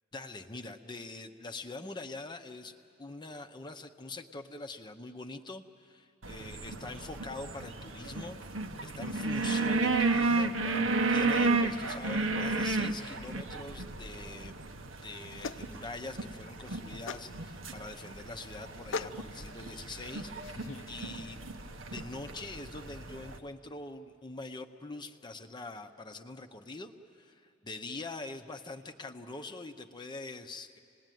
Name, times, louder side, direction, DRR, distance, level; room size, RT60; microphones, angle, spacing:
voice 1, 0.1-8.4 8.8-14.5 15.0-21.4 21.9-30.8, left 2 dB, 25° left, 6 dB, 0.7 m, -44 dB
sound 1, 6.2-23.4, right 3 dB, 80° right, 1.0 m, -33 dB
sound 2, 14.9-20.9, left 4 dB, 70° left, 0.6 m, -43 dB
28.0 x 19.5 x 9.2 m, 2.6 s
head